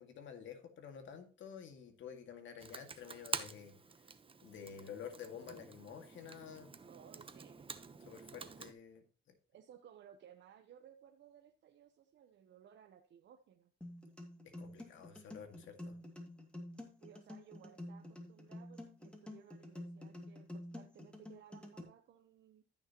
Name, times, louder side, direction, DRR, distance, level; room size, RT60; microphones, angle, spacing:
voice 1, 0.0-3.8 4.4-6.7 8.0-9.0 14.6-16.0, left 7 dB, 75° left, 6 dB, 2.1 m, -50 dB
Computer keyboard, 2.6-8.7, right 4 dB, 25° right, 1.0 m, -47 dB
voice 2, 6.9-7.7 9.5-13.7 17.0-22.6, right 9 dB, 65° right, 5 dB, 1.0 m, -60 dB
sound 1, 13.8-21.8, left 1 dB, 5° left, 2.4 m, -49 dB
14.5 x 6.4 x 3.0 m, 0.38 s
cardioid pair, 90°, 20 cm